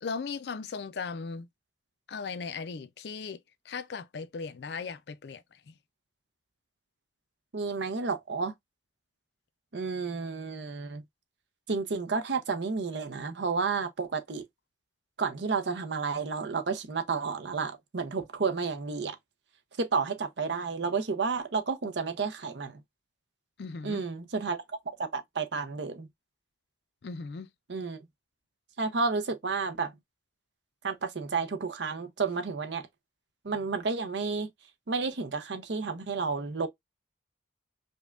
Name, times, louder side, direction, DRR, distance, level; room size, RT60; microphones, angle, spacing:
voice 1, 0.0-1.5 2.1-3.4 3.7-5.7 23.6-24.0 27.0-27.5, left 5 dB, 65° left, 0.4 m, -37 dB
voice 2, 7.5-8.5 9.7-11.0 11.7-14.4 15.2-19.2 19.8-22.8 23.8-24.6 25.0-26.1 27.7-28.0 28.8-29.9 30.8-32.9 33.4-34.5 34.9-36.7, right 4 dB, 75° right, 0.7 m, -31 dB
5.3 x 2.2 x 2.3 m
head